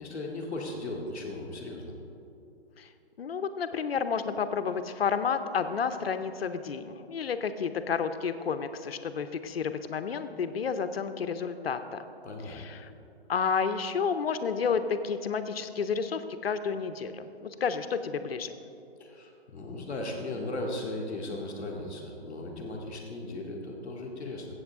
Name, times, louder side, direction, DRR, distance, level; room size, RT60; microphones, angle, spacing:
voice 1, 0.0-1.9 12.2-12.6 19.0-24.5, left 2 dB, ahead, -21 dB, 0.5 m, -37 dB
voice 2, 3.2-12.0 12.5-12.9 13.3-18.5, left 6 dB, 65° left, 10 dB, 0.7 m, -31 dB
15.0 x 7.9 x 3.6 m, 2.7 s
hypercardioid pair, 170°, 32 cm